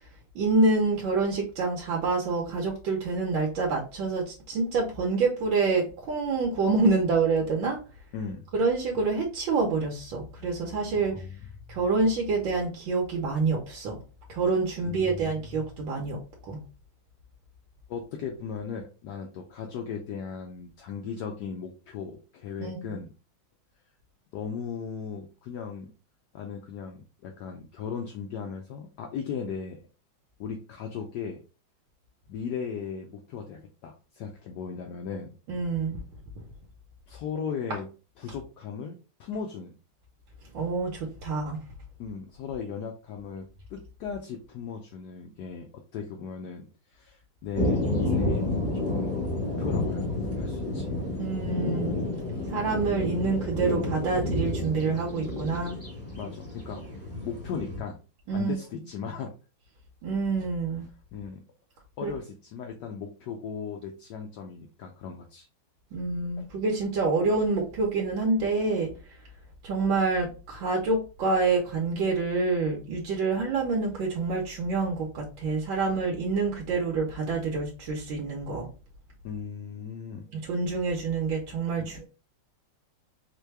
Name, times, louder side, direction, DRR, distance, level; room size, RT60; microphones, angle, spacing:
voice 1, 0.3-7.8 8.5-11.2 11.7-14.0 14.3-16.6 22.6-22.8 35.5-36.0 40.5-41.6 51.2-52.1 52.5-55.8 58.3-58.6 60.0-60.9 62.0-62.1 65.9-68.9 69.6-78.7 80.3-82.1, right 3 dB, 75° right, -1 dB, 1.5 m, -27 dB
voice 2, 8.1-8.5 10.9-11.4 14.8-15.5 17.9-23.1 24.3-25.9 26.3-29.8 30.4-31.4 32.3-35.3 37.1-37.9 38.2-39.7 42.0-43.4 43.7-50.1 50.4-50.9 56.2-56.9 57.2-58.0 58.3-59.3 61.1-61.4 62.0-65.5 66.4-66.5 79.2-80.3 81.8-81.9, left 6 dB, 75° left, 3 dB, 1.0 m, -37 dB
sound 1, 47.5-57.8, left 1 dB, 10° left, 1.0 m, -30 dB
4.5 x 2.2 x 3.2 m, 0.34 s
omnidirectional pair, 2.2 m